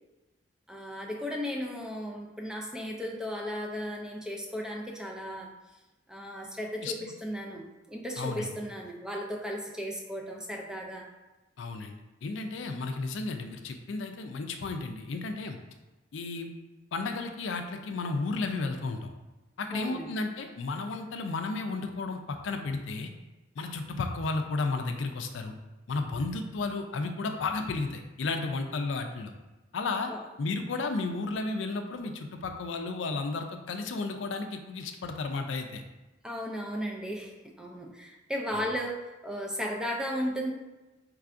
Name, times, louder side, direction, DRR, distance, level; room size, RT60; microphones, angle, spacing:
voice 1, 0.7-5.5 6.1-11.1 19.7-20.1 30.1-30.3 36.2-40.5, equal, 5° right, 0 dB, 0.4 m, -35 dB
voice 2, 8.2-8.5 11.6-15.6 16.1-16.5 16.9-19.1 19.6-23.1 23.6-25.6 25.9-29.3 29.7-30.1 30.4-35.8, left 3 dB, 80° left, 6 dB, 0.4 m, -33 dB
4.7 x 3.2 x 2.5 m, 1.1 s
head